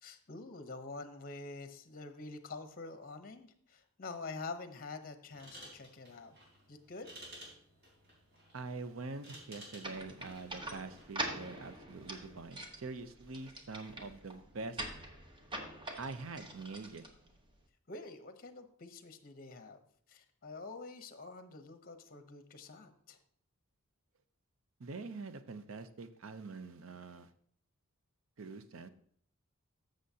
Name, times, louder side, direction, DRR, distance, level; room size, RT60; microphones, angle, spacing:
voice 1, 0.0-6.4 6.7-7.2 17.9-19.8 20.1-23.2, left 3 dB, 45° left, 8 dB, 0.8 m, -47 dB
sound 1, 5.3-11.2, right 1 dB, 50° right, 4.0 m, -55 dB
voice 2, 8.5-14.8 16.0-17.1 24.8-27.3 28.4-28.9, right 3 dB, 65° right, 11 dB, 0.6 m, -45 dB
sound 2, 9.8-17.6, right 1 dB, 25° right, 1.1 m, -44 dB
14.0 x 6.4 x 2.8 m, 0.62 s
head